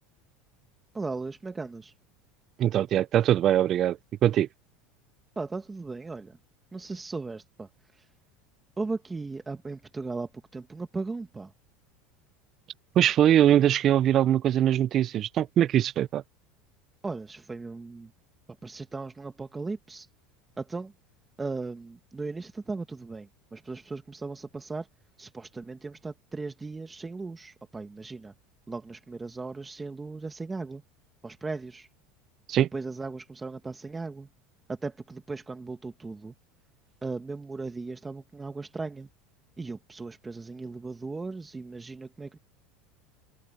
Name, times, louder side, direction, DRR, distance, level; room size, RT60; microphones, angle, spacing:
voice 1, 0.9-1.9 5.4-6.4 6.7-8.0 8.8-11.5 17.0-18.1 18.6-20.1 20.6-20.9 21.4-24.9 25.2-28.3 28.7-30.8 31.2-31.9 32.7-34.3 34.7-36.3 37.0-39.1 39.6-42.4, right 3 dB, 10° right, 1.2 m, -37 dB
voice 2, 2.6-4.5 13.0-16.2 32.5-32.7, right 11 dB, 35° right, 0.3 m, -22 dB
supercardioid pair, 150°, 0 cm